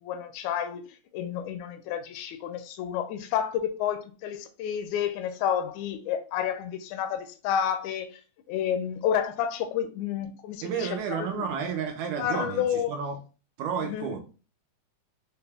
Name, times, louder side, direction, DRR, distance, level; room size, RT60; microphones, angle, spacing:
voice 1, 0.0-0.8 1.1-8.2 8.5-11.4 12.2-12.9 13.8-14.1, left 9 dB, 80° left, 1.8 m, -30 dB
voice 2, 10.6-13.2 13.6-14.2, right 7 dB, 75° right, 2.0 m, -31 dB
5.5 x 2.2 x 3.4 m
omnidirectional pair, 3.6 m